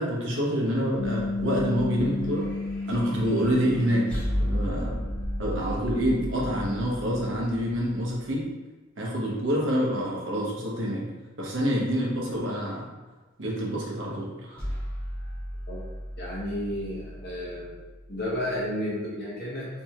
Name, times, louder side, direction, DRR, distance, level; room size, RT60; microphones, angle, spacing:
voice 1, 0.0-2.5 2.9-4.1 4.4-5.0 5.4-8.5 9.0-11.1 11.4-12.9 13.4-14.7, equal, 60° right, -4 dB, 0.9 m, -27 dB
Bass guitar, 1.0-7.2, left 3 dB, 80° left, 0.8 m, -34 dB
sound 1, 1.0-8.3 14.6-18.7, equal, 5° left, 0.8 m, -35 dB
voice 2, 16.2-17.8 18.1-19.8, left 1 dB, 50° left, -7 dB, 1.4 m, -32 dB
3.4 x 3.2 x 2.9 m, 1.3 s
head